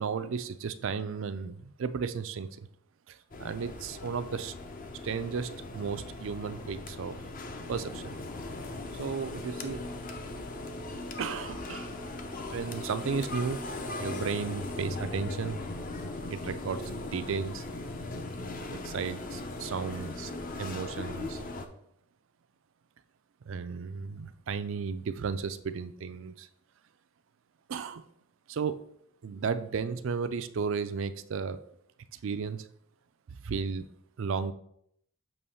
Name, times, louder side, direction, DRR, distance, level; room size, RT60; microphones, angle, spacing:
voice 1, 0.0-2.7 3.1-4.5 5.0-7.2 7.7-8.2 8.9-9.8 11.2-11.9 12.5-13.6 14.0-15.6 16.3-17.6 18.7-20.3 20.6-21.4 23.5-26.5 27.7-28.0 28.5-28.8 29.2-31.6 32.2-32.7 33.3-33.9 34.2-34.5, right 5 dB, 60° right, 12 dB, 0.4 m, -34 dB
sound 1, 3.3-21.7, left 2 dB, 40° left, 0.6 m, -39 dB
6.9 x 3.1 x 5.6 m, 0.71 s
head